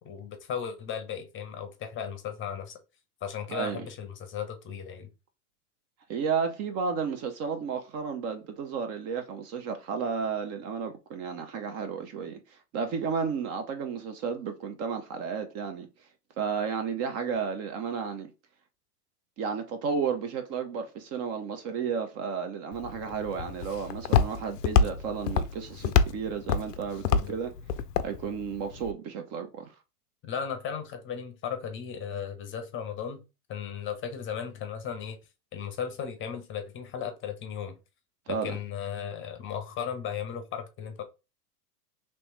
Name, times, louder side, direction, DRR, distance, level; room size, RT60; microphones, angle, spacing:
voice 1, 0.0-2.8 3.2-5.1 27.1-27.3 30.2-33.2 33.5-35.2 35.5-37.7 38.3-41.0, left 7 dB, 25° left, 0.7 m, -36 dB
voice 2, 3.5-3.9 6.1-15.9 16.4-18.3 19.4-27.5 28.0-29.7 38.3-38.6, right 6 dB, 30° right, 0.5 m, -32 dB
Walk footsteps, 22.7-28.9, left 6 dB, 80° left, 0.5 m, -27 dB
3.0 x 3.0 x 3.1 m
hypercardioid pair, 95°, 47 cm